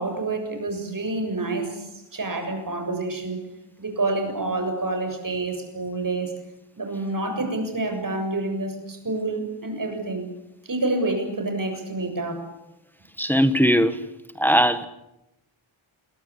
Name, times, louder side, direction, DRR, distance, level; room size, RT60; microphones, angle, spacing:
voice 1, 0.0-3.4 3.8-6.3 6.8-10.3 10.6-12.5, right 2 dB, 40° right, 7.2 m, -28 dB
voice 2, 13.2-14.0 14.4-14.9, equal, 5° left, 1.4 m, -19 dB
28.0 x 23.0 x 8.5 m
wide cardioid pair, 145°, 48 cm